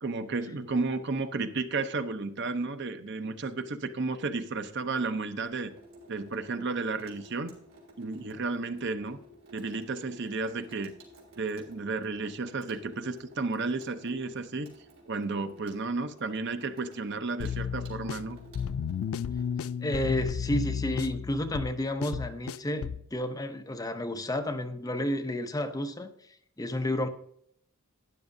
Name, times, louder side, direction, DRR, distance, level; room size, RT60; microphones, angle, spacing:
voice 1, 0.0-5.7 6.1-7.5 8.0-9.2 9.5-10.9 11.4-14.7 15.1-18.4, right 3 dB, 55° right, 9 dB, 0.7 m, -32 dB
Water tap faucet / Sink (filling or washing), 5.5-19.7, right 1 dB, 75° right, 3.2 m, -54 dB
sound 1, 17.4-23.1, left 7 dB, 75° left, 0.3 m, -33 dB
voice 2, 19.8-27.1, left 1 dB, 15° left, 7 dB, 0.6 m, -31 dB
12.0 x 9.8 x 2.7 m, 0.69 s
head